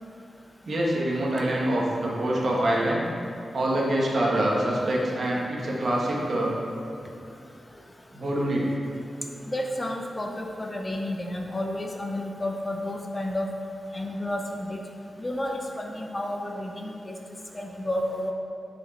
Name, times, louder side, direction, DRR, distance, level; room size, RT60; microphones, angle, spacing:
voice 1, 0.7-3.0 3.5-6.6 8.1-8.7, right 1 dB, 50° right, -3 dB, 1.4 m, -25 dB
voice 2, 9.5-13.5 13.9-14.8 15.2-17.2 17.5-18.3, left 1 dB, 20° left, 2 dB, 0.6 m, -31 dB
10.0 x 4.9 x 4.1 m, 2.9 s
wide cardioid pair, 125°, 0 cm